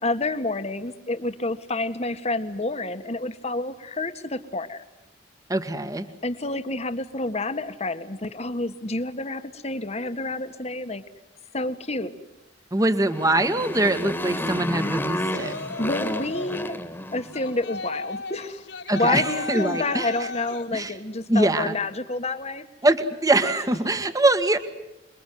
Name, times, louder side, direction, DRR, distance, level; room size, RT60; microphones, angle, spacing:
voice 1, 0.0-4.8 6.2-11.0 11.5-12.1 15.8-16.8 17.1-18.7 18.9-22.7, left 2 dB, 35° left, 10 dB, 1.6 m, -29 dB
voice 2, 5.5-6.1 12.7-15.5 18.9-20.1 20.7-20.9 21.3-21.7 22.8-24.6, right 2 dB, 20° right, 9 dB, 1.7 m, -23 dB
Motorcycle, 12.9-17.5, left 1 dB, 10° left, 2.0 m, -31 dB
Yell, 15.3-16.6 17.3-20.7, left 3 dB, 80° left, 3.4 m, -34 dB
28.0 x 22.5 x 9.4 m, 0.91 s
head